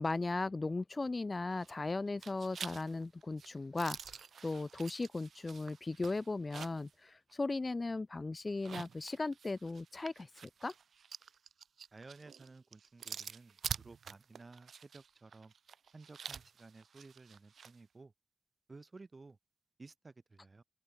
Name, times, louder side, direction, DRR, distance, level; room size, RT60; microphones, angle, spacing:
voice 1, 0.0-10.3 10.6-10.7, left 3 dB, 35° left, 0.5 m, -37 dB
sound 1, 1.5-1.9 2.2-6.9 7.3-7.4 8.5-17.7, right 7 dB, 80° right, 0.6 m, -47 dB
voice 2, 11.9-15.5 15.9-18.1 18.7-19.4 19.8-20.6, right 3 dB, 40° right, 2.3 m, -55 dB
cardioid pair, 55°, 0 cm